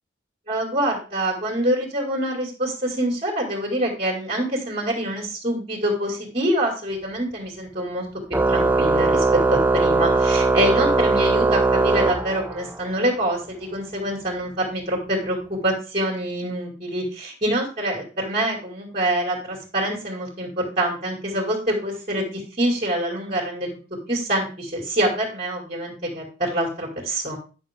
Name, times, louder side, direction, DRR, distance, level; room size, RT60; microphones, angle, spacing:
voice 1, 0.5-8.1 8.5-9.2 9.5-15.4 15.6-23.7 24.1-27.4, right 1 dB, 35° right, -4 dB, 2.3 m, -25 dB
Organ, 8.3-12.8, right 3 dB, 10° right, 0.4 m, -20 dB
10.0 x 6.1 x 3.6 m, 0.36 s
head